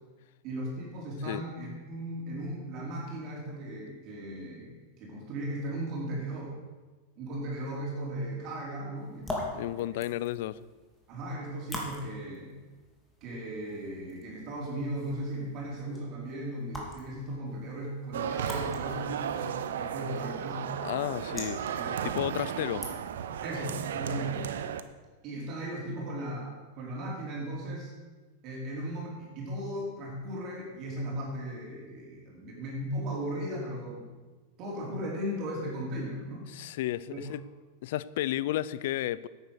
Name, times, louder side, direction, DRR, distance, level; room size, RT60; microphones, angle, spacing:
voice 1, 0.4-6.5 7.2-9.9 11.1-12.5 13.2-20.7 21.7-22.0 23.4-24.5 25.2-27.9 28.4-34.1 34.6-36.5 37.1-37.2, right 1 dB, 45° right, -3 dB, 4.1 m, -37 dB
sound 1, 9.0-23.4, left 1 dB, 10° left, 2.7 m, -44 dB
voice 2, 9.5-10.7 20.8-21.6 21.9-22.9 36.5-37.4 37.8-39.3, left 14 dB, 65° left, 19 dB, 0.5 m, -32 dB
sound 2, 18.1-24.8, right 8 dB, 80° right, 0.7 m, -34 dB
9.7 x 9.1 x 6.6 m, 1.3 s
hypercardioid pair, 120°, 0 cm